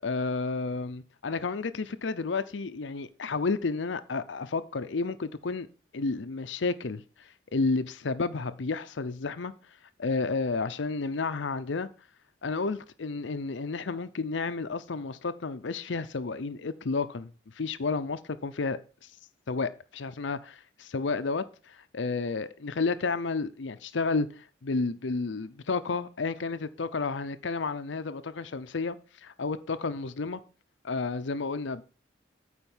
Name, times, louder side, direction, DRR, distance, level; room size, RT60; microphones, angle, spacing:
voice 1, 0.0-5.7 5.9-9.5 10.0-11.9 12.4-17.3 17.6-18.8 19.5-30.4 30.8-31.8, left 4 dB, 75° left, 0.6 m, -31 dB
9.1 x 4.3 x 7.2 m
head